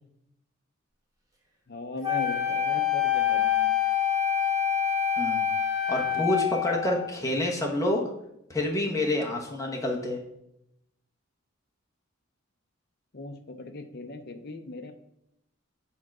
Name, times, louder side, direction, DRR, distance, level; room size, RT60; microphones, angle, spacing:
voice 1, 1.7-3.7 6.1-6.3 13.1-14.9, left 2 dB, 50° left, 7 dB, 0.7 m, -38 dB
Wind instrument woodwind instrument, 2.0-7.1, left 8 dB, 15° right, 1.1 m, -26 dB
voice 2, 5.2-5.5 5.9-8.1 8.5-10.2, left 1 dB, 15° left, 0 dB, 1.1 m, -28 dB
7.1 x 3.8 x 6.0 m, 0.80 s
head